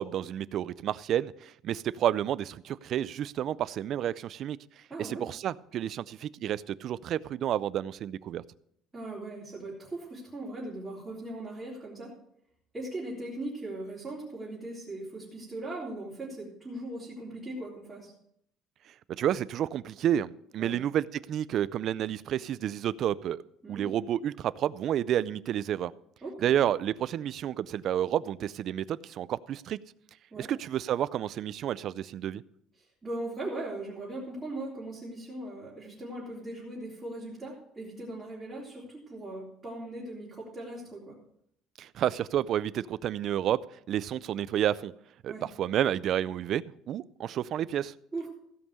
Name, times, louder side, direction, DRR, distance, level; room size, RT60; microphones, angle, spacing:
voice 1, 0.0-4.6 5.0-8.4 19.1-23.4 23.7-25.9 26.4-29.8 30.4-32.4 41.8-44.9 45.2-47.9, right 10 dB, 40° right, 18 dB, 0.3 m, -30 dB
voice 2, 4.9-5.2 8.9-12.1 12.7-18.1 20.6-20.7 23.6-23.9 26.2-26.6 30.3-30.5 32.8-41.1 45.3-45.4 48.1-48.3, right 2 dB, 10° right, -9 dB, 3.2 m, -39 dB
16.0 x 5.4 x 6.5 m, 0.72 s
cardioid pair, 170°, 0 cm